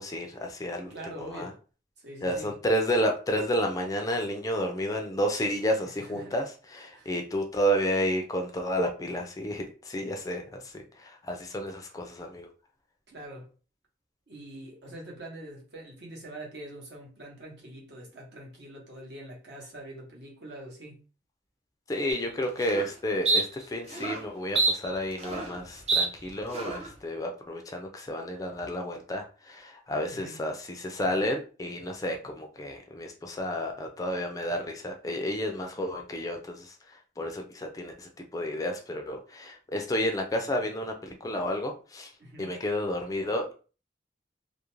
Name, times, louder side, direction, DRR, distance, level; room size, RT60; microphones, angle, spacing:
voice 1, 0.0-1.5 2.2-12.5 21.9-36.7 37.2-42.1 42.4-43.5, equal, 20° left, 0.3 m, -31 dB
voice 2, 0.9-1.6 2.0-2.5 5.8-6.4 6.9-7.1 13.1-13.5 14.3-21.0 30.1-30.4 42.2-42.6, right 1 dB, 60° right, 0.8 m, -44 dB
sound 1, 22.1-22.2 22.6-22.9 23.2-23.4 23.9-24.2 24.5-25.6 25.9-26.0 26.5-26.9, right 3 dB, 35° right, 0.5 m, -26 dB
2.4 x 2.0 x 3.0 m
head